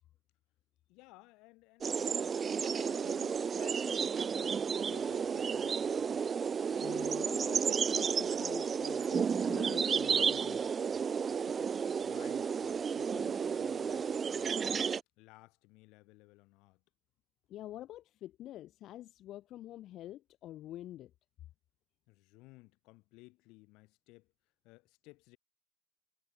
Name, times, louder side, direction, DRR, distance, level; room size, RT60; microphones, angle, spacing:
voice 1, 0.9-6.4 11.3-11.7 12.0-14.9 15.2-16.8 22.1-24.3 24.6-25.4, left 23 dB, 90° left, 2.9 m, -57 dB
sound 1, 1.8-15.0, right 6 dB, 40° right, 0.3 m, -32 dB
voice 2, 6.8-10.7 17.5-21.1, left 13 dB, 70° left, 1.3 m, -47 dB
cardioid pair, 100°, 0 cm